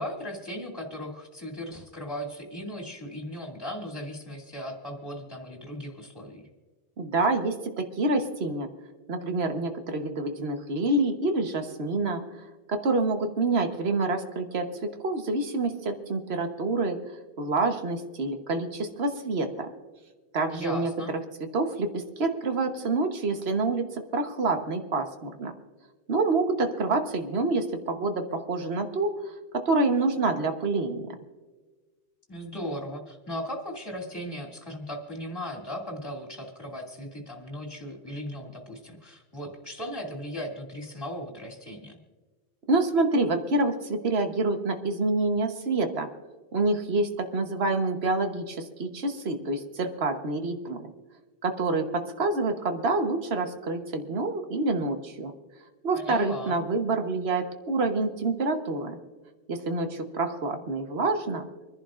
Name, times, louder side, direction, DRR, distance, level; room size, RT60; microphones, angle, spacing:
voice 1, 0.0-6.5 20.5-21.1 32.3-42.0 55.9-56.6, equal, 20° left, 0 dB, 2.4 m, -37 dB
voice 2, 7.0-8.7 9.1-12.2 12.7-14.7 15.0-19.7 20.3-21.2 21.5-25.5 26.1-31.1 42.7-46.1 46.5-50.8 51.4-55.3 55.8-59.0 59.5-61.5, right 3 dB, 65° right, 6 dB, 1.4 m, -27 dB
26.5 x 11.0 x 2.5 m, 1.3 s
omnidirectional pair, 1.1 m